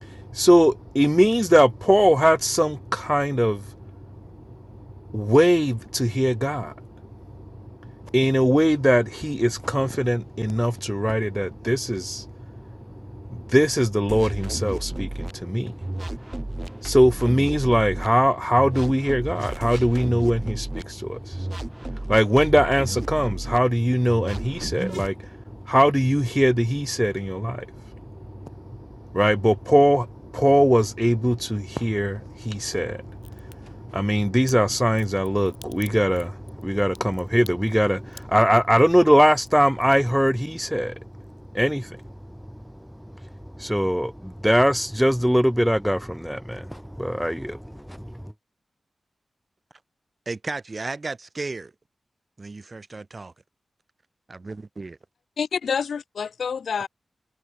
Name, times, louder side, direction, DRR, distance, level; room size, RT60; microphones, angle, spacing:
voice 1, 0.0-3.7 5.1-6.7 8.1-12.3 13.3-15.8 16.8-21.5 21.9-25.3 25.7-27.7 29.1-30.1 30.3-40.9 41.5-42.0 43.6-47.6 47.9-48.0, equal, ahead, 0.5 m, -21 dB
sound 1, 14.1-15.3 15.8-18.1 18.6-20.8 21.3-23.6 24.1-25.1, right 1 dB, 20° right, 3.6 m, -32 dB
Crack, 33.2-33.6 34.5-40.7 41.0-41.7 42.0-42.1, left 4 dB, 60° left, 3.2 m, -49 dB
voice 2, 50.2-51.7 52.4-53.3 54.3-55.0, right 3 dB, 45° right, 3.2 m, -34 dB
voice 3, 55.4-56.9, left 6 dB, 85° left, 0.7 m, -27 dB
cardioid pair, 60°, 0 cm